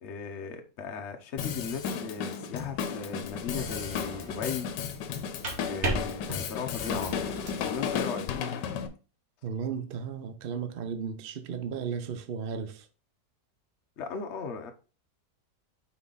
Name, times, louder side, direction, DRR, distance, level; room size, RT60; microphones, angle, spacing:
voice 1, 0.0-4.7 5.6-7.2 7.6-8.3 14.0-14.7, left 6 dB, 50° left, 1.0 m, -37 dB
Drum kit, 1.4-8.9, left 7 dB, 80° left, 1.3 m, -34 dB
sound 1, 3.3-3.8 5.1-7.7, right 1 dB, 45° right, 1.6 m, -35 dB
sound 2, 3.6-5.0 6.8-8.2, left 1 dB, 10° left, 1.4 m, -44 dB
voice 2, 9.4-12.9, right 6 dB, 70° right, 0.5 m, -35 dB
5.6 x 4.9 x 3.9 m
omnidirectional pair, 1.8 m